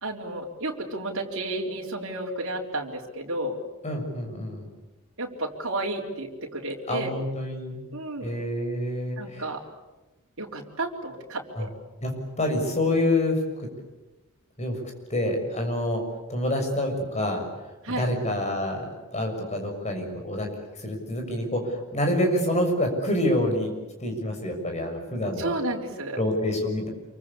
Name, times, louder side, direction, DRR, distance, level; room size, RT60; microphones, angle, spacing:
voice 1, 0.0-3.6 5.2-7.1 7.9-8.3 9.2-9.6 10.4-11.7 17.8-18.0 25.4-26.2, right 2 dB, 60° right, -1 dB, 4.0 m, -32 dB
voice 2, 3.8-4.7 6.9-7.8 8.2-9.5 11.5-11.7 12.0-12.1 12.4-13.4 14.6-14.8 15.1-16.0 16.3-17.4 18.0-20.5 20.8-23.7 24.0-25.5 26.2-26.9, left 1 dB, 30° left, 3 dB, 6.6 m, -27 dB
27.5 x 24.5 x 8.5 m, 1.1 s
head